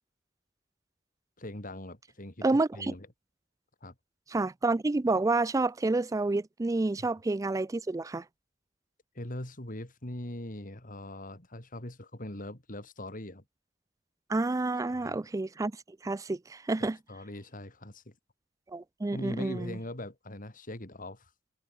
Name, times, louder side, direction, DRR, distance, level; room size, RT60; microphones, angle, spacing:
voice 1, 1.4-3.1 3.8-3.9 7.0-7.1 9.1-13.4 14.9-15.2 16.8-18.1 19.1-21.3, left 1 dB, 45° left, 3.6 m, -41 dB
voice 2, 2.4-2.9 4.3-8.2 14.3-15.7 16.0-17.0 18.7-19.8, right 2 dB, 20° right, 0.4 m, -29 dB
head